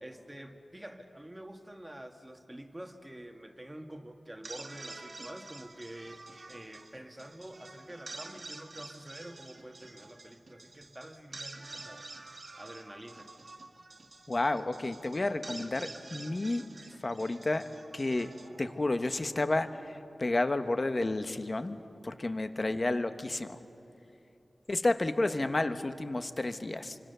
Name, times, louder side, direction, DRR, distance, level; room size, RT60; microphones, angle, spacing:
voice 1, 0.0-12.1 12.6-13.3 22.0-22.4, right 1 dB, 15° right, 5 dB, 1.7 m, -47 dB
sound 1, 4.3-19.5, right 2 dB, 45° right, 1.8 m, -48 dB
voice 2, 14.3-16.7 17.0-17.7 17.9-18.3 18.6-21.8 22.0-23.6 24.7-27.0, left 2 dB, 35° left, 9 dB, 1.2 m, -31 dB
28.0 x 25.0 x 6.9 m, 2.8 s
wide cardioid pair, 100°, 0 cm